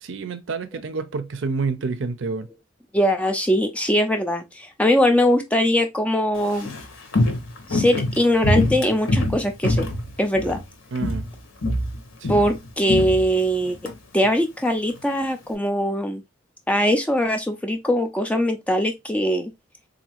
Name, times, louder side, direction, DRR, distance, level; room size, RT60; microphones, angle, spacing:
voice 1, 0.0-2.5 10.9-11.3 12.2-12.4, right 4 dB, 60° right, 0.5 m, -28 dB
voice 2, 2.9-6.7 7.7-9.9 10.2-10.6 12.3-13.8 14.1-16.2 16.7-19.5, equal, 5° left, 0.4 m, -21 dB
Walk footsteps, 6.4-10.7 11.0-11.3 11.6-13.9 14.2-14.3, left 1 dB, 70° left, 1.0 m, -24 dB
4.0 x 2.6 x 2.8 m
head